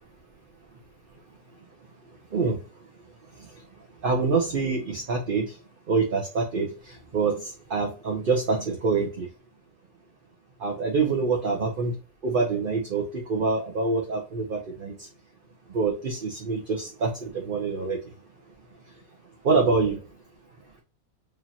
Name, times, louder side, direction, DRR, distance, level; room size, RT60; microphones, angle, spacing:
voice 1, 4.0-5.5 5.9-6.7 7.1-7.4 7.7-9.3 10.6-11.9 12.2-14.9 15.7-18.0 19.4-20.0, right 4 dB, 45° right, 1 dB, 1.0 m, -25 dB
4.9 x 2.7 x 2.8 m, 0.32 s
omnidirectional pair, 1.5 m